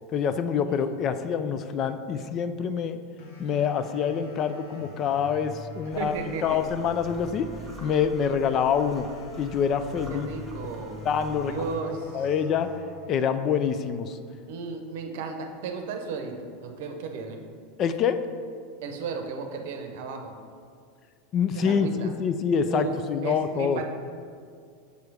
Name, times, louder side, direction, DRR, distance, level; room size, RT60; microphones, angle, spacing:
voice 1, 0.1-3.0 3.4-7.5 7.8-9.1 9.4-10.3 11.0-11.5 12.1-12.7 13.1-14.2 17.8-18.2 21.3-23.8, left 7 dB, 40° left, 10 dB, 0.3 m, -26 dB
sound 1, 3.2-14.2, equal, 75° left, 1.1 m, -45 dB
sound 2, 5.9-11.8, right 2 dB, 5° right, 1.4 m, -47 dB
voice 2, 6.0-6.6 10.1-11.0 11.4-12.2 14.5-17.4 18.8-20.3 21.5-22.1 22.7-23.8, right 4 dB, 70° right, 5 dB, 0.7 m, -34 dB
6.6 x 3.3 x 4.7 m, 2.2 s
hypercardioid pair, 110°, 0 cm